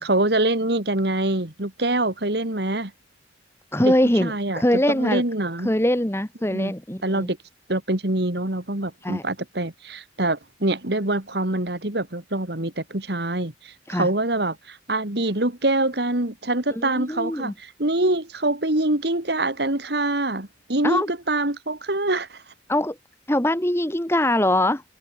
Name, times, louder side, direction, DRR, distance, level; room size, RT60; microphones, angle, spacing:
voice 1, 0.0-2.9 3.8-5.7 6.5-6.7 7.0-7.4 7.7-22.4, right 2 dB, 60° right, 2.5 m, -25 dB
voice 2, 3.7-5.2 5.6-7.3 9.0-9.2 13.9-14.1 16.8-17.5 20.8-21.1 22.7-22.9 23.3-24.8, left 1 dB, 15° left, 1.6 m, -22 dB
head